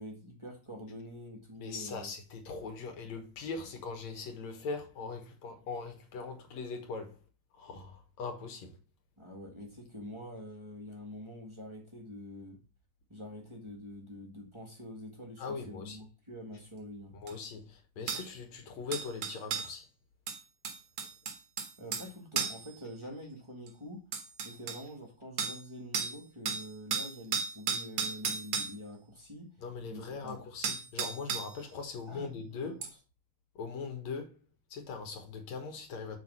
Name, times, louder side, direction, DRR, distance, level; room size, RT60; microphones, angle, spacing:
voice 1, 0.0-2.1 9.2-12.6 13.1-17.1 21.8-24.0 24.4-29.5 29.9-30.4 32.1-32.8, equal, 15° right, 1.0 m, -46 dB
voice 2, 1.6-7.2 7.5-8.8 15.4-16.0 17.1-19.9 29.6-32.8 33.6-34.4 34.7-36.2, left 4 dB, 65° left, 2.6 m, -40 dB
sound 1, 17.3-17.4 18.1-18.3 18.9-19.7 20.3-22.1 22.4-22.7 23.7-23.8 24.1-24.8 25.4-25.6 25.9-26.2 26.5-28.7 30.3-30.4 30.6-31.6 32.8-32.9, right 6 dB, 55° right, 1.7 m, -34 dB
7.1 x 4.8 x 5.6 m
omnidirectional pair, 3.4 m